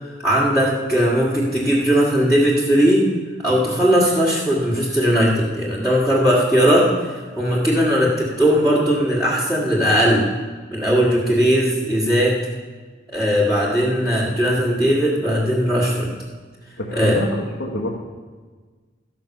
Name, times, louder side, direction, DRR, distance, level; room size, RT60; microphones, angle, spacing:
voice 1, 0.2-3.1 3.4-7.1 7.4-10.2 10.7-12.3 13.1-16.1 16.9-17.2, equal, 5° left, -9 dB, 1.9 m, -18 dB
voice 2, 13.6-14.0 16.8-17.9, left 1 dB, 75° left, -3 dB, 1.5 m, -27 dB
13.5 x 6.1 x 7.0 m, 1.4 s
head